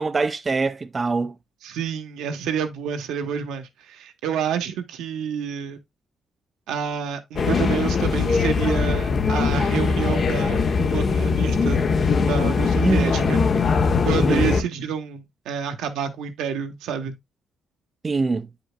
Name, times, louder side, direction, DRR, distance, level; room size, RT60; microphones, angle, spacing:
voice 1, 0.0-1.3 12.8-13.4 14.1-14.6 18.0-18.5, right 4 dB, 30° right, 0.4 m, -24 dB
voice 2, 1.6-5.8 6.7-11.8 12.3-13.4 14.0-17.1, right 7 dB, 85° right, 0.9 m, -28 dB
sound 1, 7.4-14.6, left 5 dB, 50° left, 0.8 m, -21 dB
8.7 x 5.1 x 2.2 m
cardioid pair, 90°, 0 cm